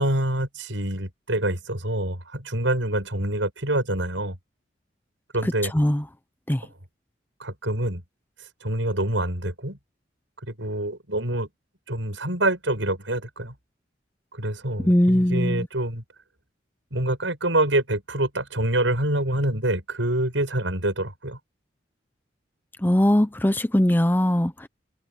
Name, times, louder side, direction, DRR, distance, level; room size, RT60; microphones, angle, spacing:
voice 1, 0.0-4.4 5.3-5.7 7.4-8.0 8.6-9.8 10.4-11.5 11.9-13.5 14.3-16.0 16.9-21.4, right 1 dB, 80° right, 7.7 m, -26 dB
voice 2, 14.8-15.7 22.8-24.7, left 1 dB, 10° left, 0.6 m, -20 dB
open air
head